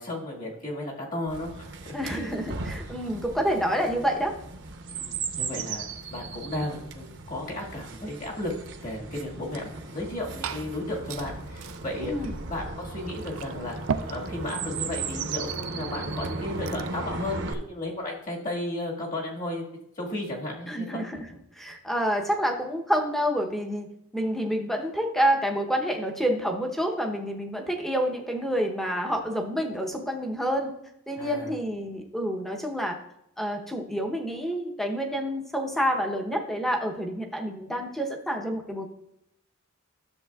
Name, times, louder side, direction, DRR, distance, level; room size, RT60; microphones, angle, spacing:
voice 1, 0.0-1.7 2.1-2.5 4.9-5.8 6.1-13.8 14.1-19.7 19.9-21.1 31.1-31.5, left 1 dB, 35° left, -2 dB, 1.7 m, -34 dB
Chirp tweet, 1.3-17.5, right 4 dB, 55° right, 0.8 m, -36 dB
voice 2, 1.9-4.3 12.0-12.3 20.7-21.3 21.6-23.9 24.1-30.7 31.1-33.0 33.4-38.9, equal, ahead, 2 dB, 0.7 m, -28 dB
Liquid, 9.9-17.0, right 6 dB, 70° right, 0.4 m, -39 dB
12.5 x 7.0 x 2.3 m, 0.79 s
head